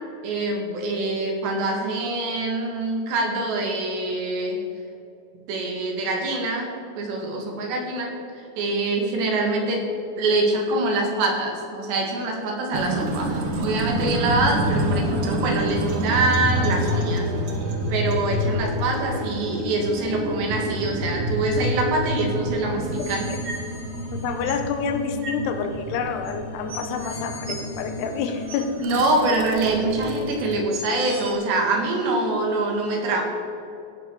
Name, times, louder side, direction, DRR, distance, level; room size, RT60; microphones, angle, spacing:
voice 1, 0.2-4.6 5.5-8.2 8.6-9.9 10.2-17.3 17.9-23.3 28.8-33.2, right 2 dB, 90° right, 1 dB, 4.4 m, -24 dB
sound 1, 12.7-30.6, equal, 60° right, 2.4 m, -28 dB
sound 2, 22.8-24.7 25.2-25.4 26.2-26.3 26.7-28.8 29.2-29.3 30.3-30.4 30.7-31.3, right 2 dB, 40° right, 2.4 m, -38 dB
voice 2, 24.1-28.7 32.2-32.3, left 6 dB, 80° left, 7 dB, 3.0 m, -28 dB
16.5 x 11.5 x 4.8 m, 2.8 s
omnidirectional pair, 4.8 m